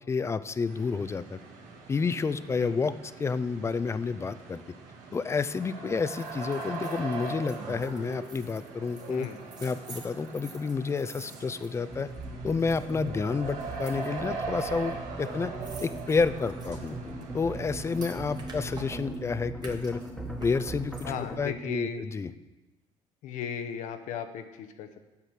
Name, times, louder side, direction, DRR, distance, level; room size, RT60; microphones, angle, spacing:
voice 1, 0.1-1.4 1.9-2.9 3.2-4.6 5.1-9.3 9.6-12.1 12.4-15.5 15.8-17.0 17.3-20.0 20.4-21.1 21.4-22.3, left 4 dB, 20° left, 14 dB, 0.4 m, -30 dB
sound 1, 0.7-19.0, right 4 dB, 75° right, 1.7 m, -41 dB
sound 2, 6.1-12.2 12.5-13.1 13.6-14.6 14.9-15.0 15.2-19.2 19.6-21.3 21.7-21.8, right 4 dB, 35° right, 1.6 m, -50 dB
sound 3, 11.9-21.4, right 2 dB, ahead, 1.3 m, -40 dB
voice 2, 21.0-22.0 23.2-25.1, left 7 dB, 75° left, 7 dB, 0.9 m, -36 dB
8.3 x 6.0 x 7.3 m, 1.1 s
cardioid pair, 115°, 13 cm